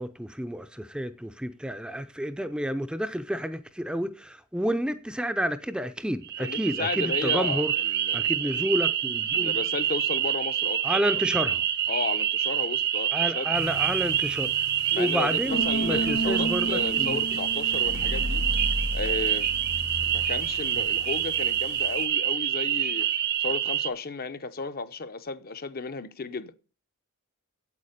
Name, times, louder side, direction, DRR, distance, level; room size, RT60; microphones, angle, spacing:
voice 1, 0.0-7.7 8.1-9.6 10.8-11.6 13.1-14.5 14.9-17.2, equal, 5° right, 0.5 m, -30 dB
sound 1, 6.2-23.9, right 10 dB, 45° right, 0.8 m, -27 dB
voice 2, 6.4-8.6 9.3-10.8 11.1-11.2 11.9-13.6 14.9-18.5 18.9-19.5 20.1-23.1 23.4-26.5, left 3 dB, 45° left, 0.8 m, -34 dB
sound 2, 13.5-22.0, right 1 dB, 80° left, 2.4 m, -33 dB
8.4 x 8.1 x 6.6 m
head